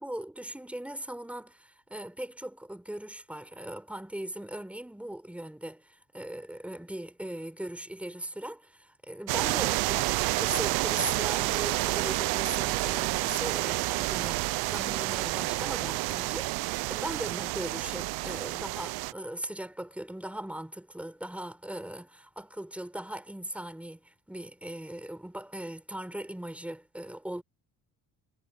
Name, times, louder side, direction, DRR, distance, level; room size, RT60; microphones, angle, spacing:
voice 1, 0.0-27.4, right 1 dB, 5° right, 4.4 m, -39 dB
sound 1, 9.3-19.1, right 21 dB, 80° right, 0.6 m, -29 dB
cardioid pair, 110°, 37 cm